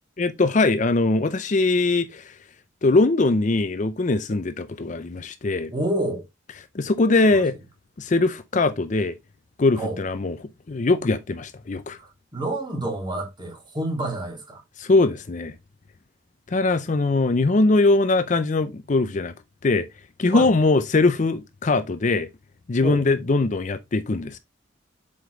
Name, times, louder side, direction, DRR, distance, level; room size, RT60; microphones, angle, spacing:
voice 1, 0.2-2.4 2.8-5.7 6.7-7.5 8.0-9.2 9.6-12.0 14.8-15.6 16.5-19.3 19.6-19.9 20.2-22.3 22.7-24.4, left 3 dB, 40° left, 0.5 m, -21 dB
voice 2, 5.7-6.2 7.3-7.4 9.8-10.0 12.0-14.6 20.3-20.5 22.8-23.0, right 1 dB, 20° right, 2.5 m, -28 dB
7.6 x 5.1 x 3.1 m
head